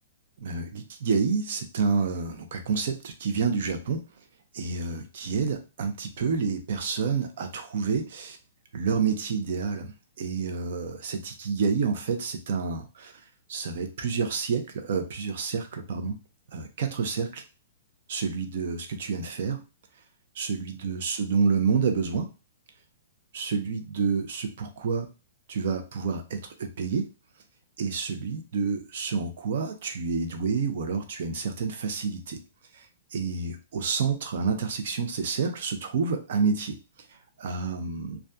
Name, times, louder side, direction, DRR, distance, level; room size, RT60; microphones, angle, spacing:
voice 1, 0.4-4.0 4.5-8.4 8.7-13.1 13.5-16.2 16.5-17.4 18.1-19.6 20.3-22.3 23.3-25.1 25.5-27.1 27.8-32.4 32.7-36.8 37.1-38.2, right 5 dB, 60° right, 6 dB, 0.6 m, -29 dB
2.6 x 2.3 x 2.2 m, 0.30 s
hypercardioid pair, 150°, 0 cm